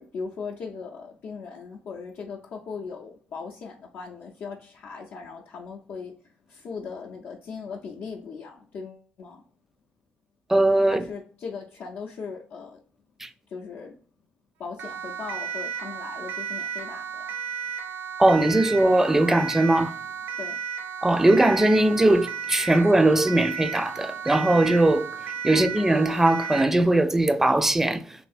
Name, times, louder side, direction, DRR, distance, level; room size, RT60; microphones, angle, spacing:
voice 1, 0.0-9.4 10.9-12.8 13.5-14.0 14.6-17.4 20.4-20.6 25.5-25.8, left 5 dB, 65° left, 0.5 m, -38 dB
voice 2, 10.5-11.0 13.2-13.3 18.2-19.9 21.0-25.1 25.4-28.0, right 1 dB, 10° right, 0.3 m, -20 dB
Siren, 14.8-26.8, right 7 dB, 80° right, 0.4 m, -34 dB
3.2 x 2.7 x 2.4 m
cardioid pair, 130°, 4 cm